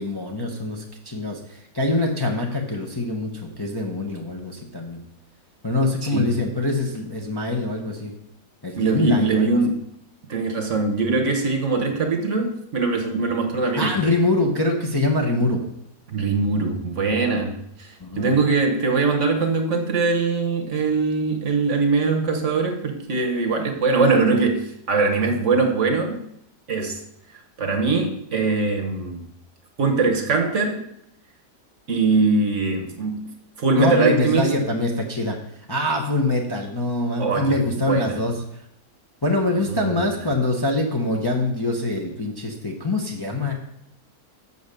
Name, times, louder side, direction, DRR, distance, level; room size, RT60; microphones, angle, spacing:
voice 1, 0.0-5.0 5.6-8.1 8.6-9.5 13.8-15.6 18.0-18.3 33.8-35.4 35.7-38.3 39.2-43.5, left 2 dB, 20° left, -1 dB, 0.8 m, -24 dB
voice 2, 8.7-9.8 10.3-14.0 16.1-26.2 26.7-27.0 27.6-29.3 29.8-30.8 31.9-33.2 33.6-34.5 37.2-38.2 39.7-40.0, right 4 dB, 55° right, 4 dB, 1.3 m, -22 dB
6.8 x 5.5 x 6.6 m, 0.76 s
omnidirectional pair, 1.7 m